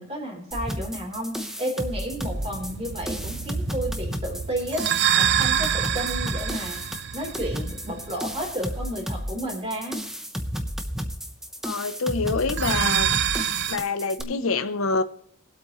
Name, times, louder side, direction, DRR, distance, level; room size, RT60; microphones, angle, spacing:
voice 1, 0.0-10.0 14.2-14.4, equal, 30° right, 3.8 m, -32 dB
sound 1, 0.5-14.2, equal, ahead, 1.0 m, -32 dB
sound 2, 2.1-8.7 12.4-13.8, right 9 dB, 55° right, 0.5 m, -27 dB
voice 2, 11.6-13.2 13.7-15.0, left 4 dB, 80° left, 0.8 m, -26 dB
21.0 x 8.3 x 3.1 m
head